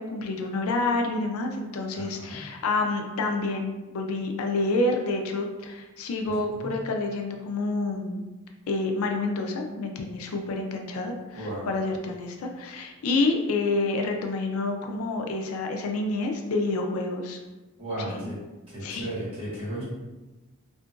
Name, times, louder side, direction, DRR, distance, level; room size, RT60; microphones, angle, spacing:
voice 1, 0.0-8.2 8.7-17.4 18.1-18.3 18.8-19.1, left 2 dB, 80° left, 3 dB, 0.4 m, -28 dB
voice 2, 1.9-2.4 6.6-6.7 11.3-11.7 17.8-18.4 18.7-19.8, right 1 dB, 25° right, -9 dB, 1.4 m, -34 dB
2.8 x 2.3 x 2.5 m, 1.1 s
head